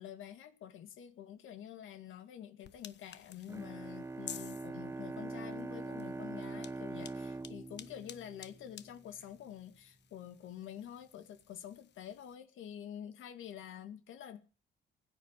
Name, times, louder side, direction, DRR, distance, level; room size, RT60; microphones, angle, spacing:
voice 1, 0.0-14.4, left 10 dB, 80° left, 2.1 m, -48 dB
sound 1, 2.6-12.4, left 9 dB, 60° left, 1.1 m, -54 dB
Bowed string instrument, 3.5-9.0, right 3 dB, 15° right, 0.8 m, -43 dB
15.5 x 9.9 x 7.4 m
cardioid pair, 90°, 20 cm